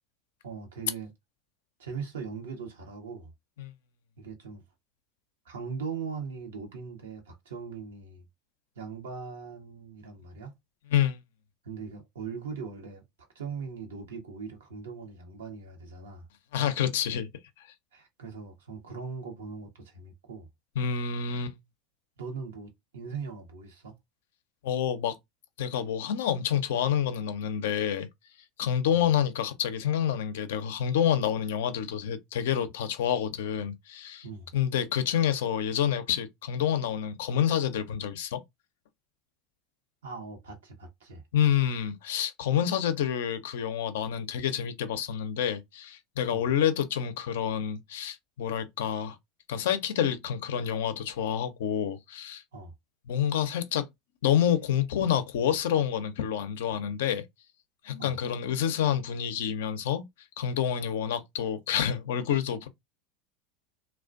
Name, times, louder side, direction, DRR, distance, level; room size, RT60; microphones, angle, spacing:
voice 1, 0.4-1.1 1.8-3.3 4.2-4.6 5.4-8.2 8.8-10.5 11.6-13.0 13.3-16.3 17.9-20.5 22.2-23.9 28.9-29.0 34.2-34.5 40.0-41.2 46.3-46.5 52.5-52.7 58.0-58.2, right 5 dB, 85° right, 0.8 m, -40 dB
voice 2, 16.5-17.3 17.6-17.7 20.8-21.5 24.6-25.2 25.6-28.1 28.6-34.3 34.5-38.4 41.3-49.2 49.5-52.4 53.1-53.9 54.2-57.2 57.8-60.1 60.4-62.7, left 9 dB, 75° left, 0.4 m, -28 dB
2.4 x 2.1 x 2.5 m
hypercardioid pair, 90°, 0 cm